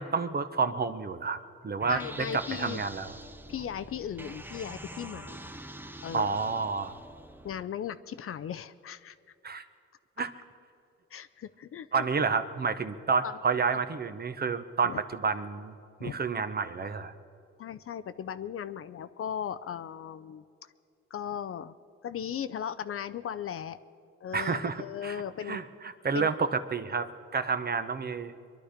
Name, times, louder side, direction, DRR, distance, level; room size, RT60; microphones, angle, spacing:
voice 1, 0.0-1.4 1.6-3.1 6.1-6.9 9.4-9.6 10.2-10.3 11.9-15.7 16.0-17.1 24.3-25.2 25.5-28.3, right 5 dB, 30° right, 10 dB, 0.9 m, -30 dB
sound 1, 1.8-7.6, right 1 dB, 5° right, 0.6 m, -44 dB
voice 2, 1.9-2.8 3.5-5.4 6.0-6.4 7.4-9.2 11.1-12.0 13.2-13.4 14.8-15.0 16.0-16.2 17.6-20.4 21.1-21.7 22.0-23.8 24.2-25.6 26.1-26.3, left 9 dB, 45° left, 12 dB, 0.6 m, -37 dB
23.5 x 11.5 x 5.1 m, 2.4 s
cardioid pair, 90°, 30 cm